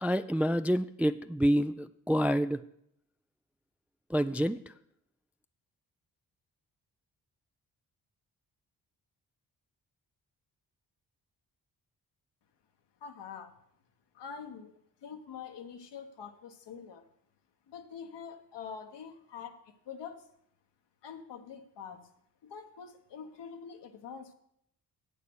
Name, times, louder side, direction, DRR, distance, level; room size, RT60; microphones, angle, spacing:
voice 1, 0.0-2.6 4.1-4.6, equal, 5° right, 12 dB, 0.3 m, -27 dB
voice 2, 13.0-13.5 14.1-14.7 15.0-17.0 17.7-20.2 21.0-22.1 22.4-24.3, left 6 dB, 70° left, 6 dB, 1.2 m, -45 dB
8.5 x 6.9 x 6.2 m, 0.73 s
supercardioid pair, 45°, 43 cm